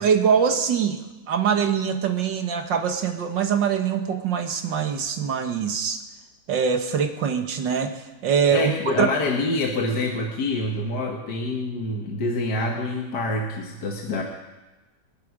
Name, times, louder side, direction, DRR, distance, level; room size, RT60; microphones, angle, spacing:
voice 1, 0.0-6.0 6.5-8.7 9.0-9.1, right 7 dB, 60° right, 6 dB, 1.9 m, -23 dB
voice 2, 8.5-14.2, left 2 dB, 55° left, 1 dB, 1.9 m, -26 dB
26.5 x 10.0 x 4.9 m, 1.1 s
omnidirectional pair, 2.3 m